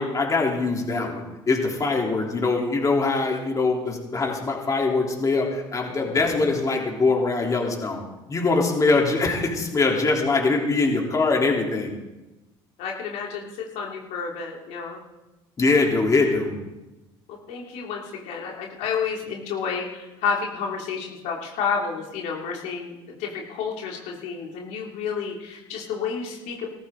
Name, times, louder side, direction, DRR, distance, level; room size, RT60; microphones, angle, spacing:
voice 1, 0.0-8.0 8.3-11.9 15.6-16.5, left 3 dB, 30° left, 0 dB, 3.5 m, -23 dB
voice 2, 5.8-6.2 12.8-15.0 17.3-26.7, left 6 dB, 70° left, -1 dB, 2.7 m, -30 dB
17.5 x 14.0 x 3.9 m, 1.1 s
supercardioid pair, 90°, 12 cm